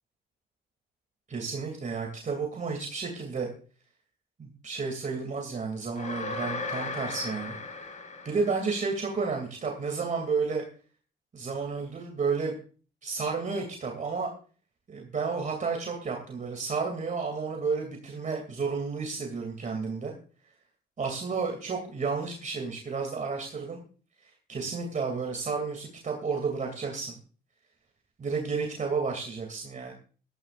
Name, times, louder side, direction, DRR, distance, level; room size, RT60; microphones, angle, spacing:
voice 1, 1.3-3.5 4.4-7.6 8.2-10.6 11.3-12.5 13.0-14.3 14.9-20.1 21.0-23.8 24.5-27.2 28.2-29.9, right 4 dB, 40° right, 2 dB, 2.7 m, -31 dB
sound 1, 6.0-9.1, left 3 dB, 35° left, 2.7 m, -36 dB
16.5 x 13.5 x 2.5 m, 0.40 s
cardioid pair, 90°, 20 cm